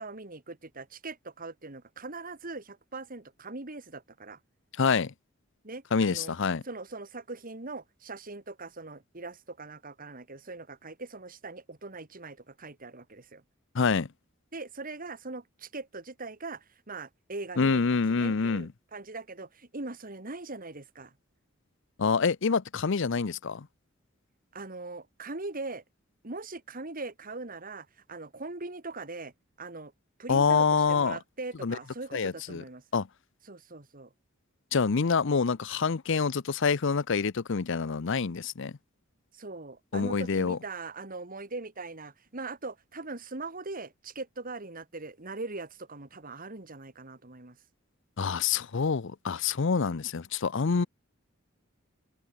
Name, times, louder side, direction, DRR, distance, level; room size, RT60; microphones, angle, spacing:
voice 1, 0.0-4.4 5.6-6.3 6.6-13.4 14.5-17.8 18.1-21.1 24.5-25.8 26.2-29.3 29.6-29.9 30.2-32.8 33.5-34.1 39.3-47.6 50.7-50.9, right 3 dB, 45° right, 2.4 m, -41 dB
voice 2, 4.8-5.1 5.9-6.6 13.7-14.1 17.6-18.7 22.0-23.7 30.3-31.2 31.6-31.8 32.1-32.6 32.9-33.1 34.7-38.7 39.9-40.6 48.2-50.9, left 5 dB, 65° left, 0.6 m, -26 dB
head